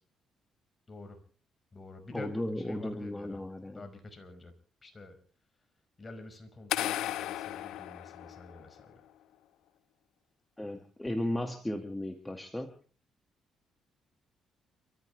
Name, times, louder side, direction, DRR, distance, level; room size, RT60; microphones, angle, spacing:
voice 1, 0.9-1.2 1.7-3.4 3.7-4.5 4.8-5.2 6.0-8.9, left 2 dB, 30° left, 7 dB, 5.2 m, -48 dB
voice 2, 2.1-3.8 10.6-12.7, left 1 dB, 10° left, 5 dB, 2.0 m, -35 dB
sound 1, 6.7-8.8, left 13 dB, 85° left, 0.7 m, -35 dB
29.5 x 14.5 x 3.3 m, 0.40 s
cardioid pair, 90°, 0 cm